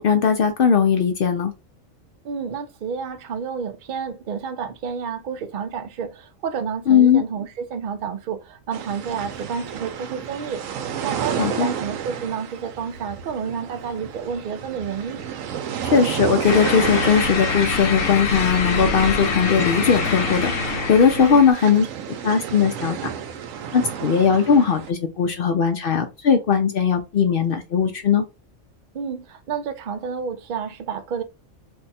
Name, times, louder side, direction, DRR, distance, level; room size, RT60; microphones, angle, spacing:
voice 1, 0.0-1.5 6.9-7.2 11.4-11.7 15.8-20.5 20.9-23.0 23.7-28.2, left 6 dB, 60° left, 0.6 m, -19 dB
voice 2, 2.2-15.2 21.2-21.4 28.9-31.2, right 6 dB, 55° right, 0.5 m, -30 dB
sound 1, 8.7-24.9, right 8 dB, 80° right, 1.0 m, -32 dB
sound 2, 16.4-21.5, left 4 dB, 80° left, 1.1 m, -25 dB
2.6 x 2.3 x 4.0 m
omnidirectional pair, 1.3 m